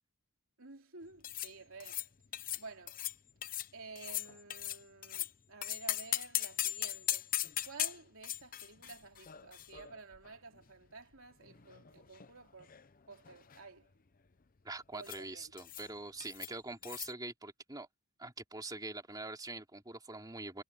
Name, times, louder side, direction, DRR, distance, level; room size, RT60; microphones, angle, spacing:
voice 1, 0.6-2.1 2.6-3.0 3.7-7.3 7.6-12.8 13.1-13.9 14.9-15.5, right 3 dB, 65° right, 3.5 m, -52 dB
sound 1, 1.2-1.5 1.8-2.1 2.3-2.6 2.9-3.1 3.4-3.7 3.9-5.3 5.6-10.3 10.6-10.7 11.4-12.3 12.6-12.9 13.1-13.6 15.0-15.2 15.6-15.9 16.2-16.5 16.8-17.1, left 13 dB, 40° left, 0.7 m, -39 dB
voice 2, 14.6-17.9 18.2-20.6, right 2 dB, 15° right, 3.2 m, -44 dB
head